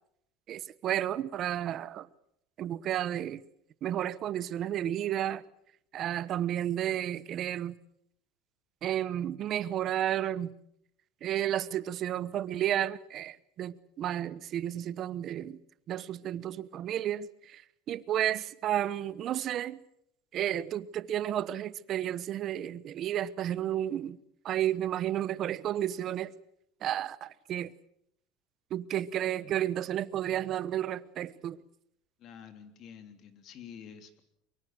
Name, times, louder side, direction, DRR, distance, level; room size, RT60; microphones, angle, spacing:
voice 1, 0.5-2.1 2.6-3.4 3.8-5.4 5.9-7.8 8.8-10.5 11.2-15.6 15.9-17.6 17.9-19.8 20.3-24.2 24.4-26.3 26.8-27.7 28.7-31.6, right 11 dB, 35° right, 0.9 m, -32 dB
voice 2, 32.2-34.2, left 8 dB, 40° left, 3.2 m, -49 dB
24.0 x 23.5 x 7.7 m
cardioid pair, 155°, 0 cm